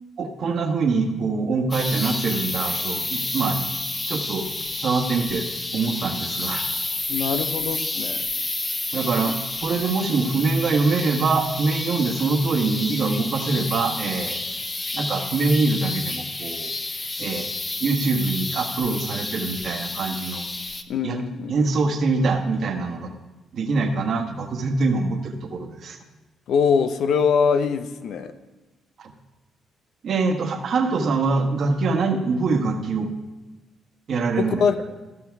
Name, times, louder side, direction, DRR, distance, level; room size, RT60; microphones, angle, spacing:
voice 1, 0.2-3.7 4.1-4.5 4.8-5.4 5.7-6.6 8.9-9.4 9.6-14.4 14.9-16.7 17.2-17.5 17.8-20.5 21.0-21.2 21.5-23.1 23.5-26.0 29.0-29.1 30.0-33.1 34.1-34.6, right 3 dB, 60° right, 4 dB, 1.3 m, -24 dB
sound 1, 1.7-20.8, left 2 dB, 25° left, 0.7 m, -30 dB
voice 2, 7.1-8.3 20.9-21.5 26.5-28.3 34.4-34.8, left 6 dB, 70° left, 10 dB, 0.7 m, -23 dB
14.5 x 6.1 x 4.7 m, 1.2 s
cardioid pair, 90°, 0 cm